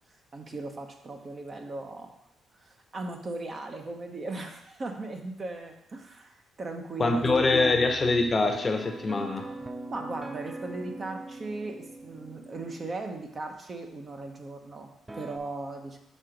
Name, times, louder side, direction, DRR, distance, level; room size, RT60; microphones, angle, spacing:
voice 1, 0.3-2.1 2.5-7.9 9.9-16.0, right 2 dB, 40° right, 3 dB, 0.9 m, -38 dB
voice 2, 7.0-9.5, left 3 dB, 30° left, 5 dB, 0.8 m, -24 dB
sound 1, 7.2-12.9 15.1-15.4, right 2 dB, 15° right, 0.5 m, -42 dB
6.4 x 3.8 x 5.1 m, 0.78 s
cardioid pair, 90°, 0 cm